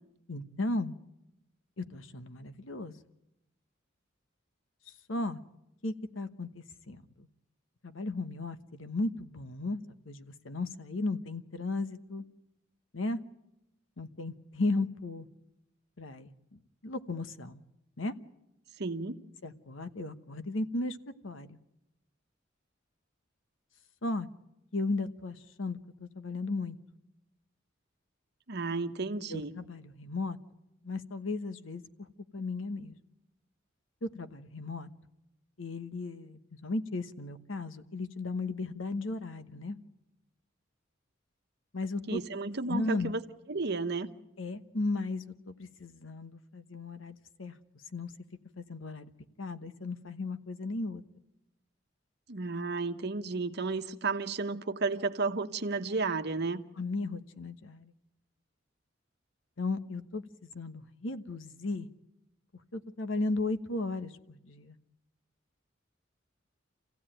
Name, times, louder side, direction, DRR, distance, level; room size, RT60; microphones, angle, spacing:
voice 1, 0.3-0.9 1.8-3.0 5.1-5.4 5.8-7.3 7.8-9.8 10.1-12.2 12.9-13.2 14.0-15.3 16.0-17.6 18.0-18.1 19.4-21.0 21.2-21.6 24.0-24.3 24.7-26.8 29.3-30.4 30.8-32.1 32.3-33.0 34.0-34.9 35.6-39.8 41.7-42.2 42.7-43.1 44.4-47.5 47.9-48.1 48.6-49.1 49.4-51.0 56.8-57.9 59.6-61.9 62.7-64.8, left 2 dB, 80° left, 1.1 m, -35 dB
voice 2, 18.8-19.2 28.5-29.5 42.1-43.2 43.5-44.1 52.3-56.6, right 3 dB, 55° right, 1.1 m, -32 dB
27.5 x 15.5 x 9.0 m
head